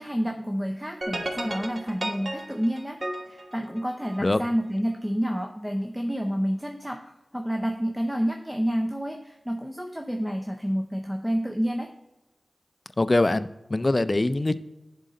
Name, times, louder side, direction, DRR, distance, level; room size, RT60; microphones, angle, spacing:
voice 1, 0.0-3.0 3.3-11.9, equal, 5° right, 3 dB, 0.6 m, -29 dB
sound 1, 1.0-4.4, right 1 dB, 50° right, 1.0 m, -34 dB
voice 2, 13.0-14.6, left 2 dB, 35° left, 13 dB, 0.4 m, -23 dB
10.5 x 3.8 x 4.2 m, 0.99 s
wide cardioid pair, 65°, 0 cm